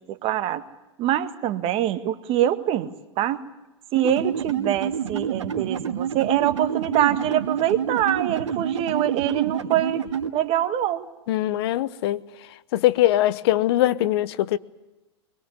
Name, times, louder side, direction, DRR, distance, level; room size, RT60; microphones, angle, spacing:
voice 1, 0.1-0.6 1.0-3.4 3.9-10.0 10.3-11.1, right 11 dB, 40° right, 1.7 m, -24 dB
sound 1, 4.0-10.3, right 8 dB, 75° right, 1.9 m, -28 dB
voice 2, 11.3-12.2 12.7-14.6, left 14 dB, 55° left, 1.0 m, -21 dB
23.0 x 21.5 x 9.6 m
hypercardioid pair, 105°, 16 cm